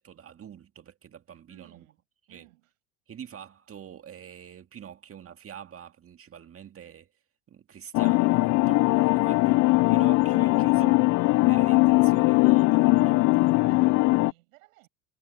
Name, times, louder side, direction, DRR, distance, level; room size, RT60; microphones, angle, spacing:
voice 1, 0.0-1.9 2.3-2.5 3.1-7.1 7.5-9.6 9.9-11.0 11.4-13.7, right 9 dB, 35° right, 2.0 m, -45 dB
voice 2, 1.3-2.0 2.3-2.7 9.4-9.5 9.7-10.1 13.6-14.9, right 20 dB, 80° right, 7.4 m, -57 dB
sound 1, 7.9-14.3, left 22 dB, 45° left, 0.4 m, -20 dB
hypercardioid pair, 90°, 40 cm